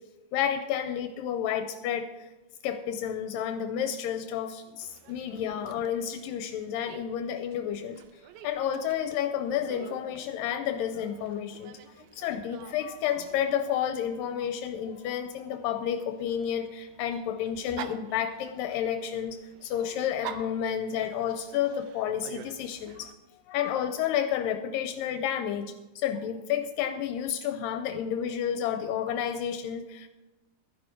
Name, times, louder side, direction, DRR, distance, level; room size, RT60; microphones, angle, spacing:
voice 1, 0.3-2.1 2.6-8.0 8.4-11.8 12.1-23.1 23.5-30.1, left 9 dB, 80° left, 8 dB, 2.3 m, -31 dB
Dog, 4.8-23.1, right 9 dB, 75° right, 1.9 m, -49 dB
13.0 x 11.0 x 4.5 m, 1.1 s
omnidirectional pair, 4.0 m